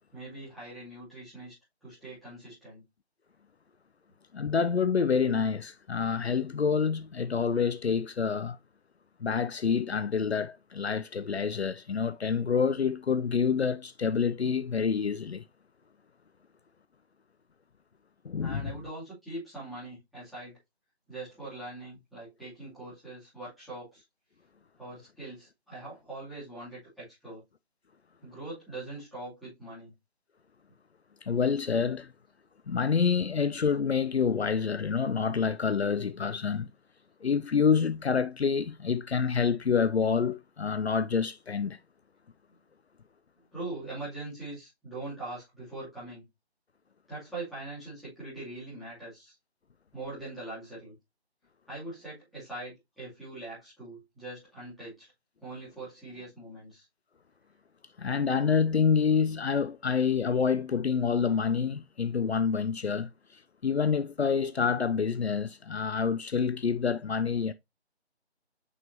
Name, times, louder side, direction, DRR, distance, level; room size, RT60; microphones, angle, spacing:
voice 1, 0.1-1.5 1.8-2.8 18.4-20.6 21.1-24.0 24.8-27.4 28.2-29.9 43.5-46.2 47.1-49.3 49.9-50.9 51.7-55.1 55.4-56.8, right 2 dB, ahead, 2.8 m, -42 dB
voice 2, 4.3-8.6 9.2-15.4 18.2-18.7 31.2-32.1 32.7-36.7 37.2-41.8 58.0-67.5, left 6 dB, 70° left, 0.6 m, -27 dB
6.3 x 5.5 x 2.8 m
figure-of-eight pair, 155°, 33 cm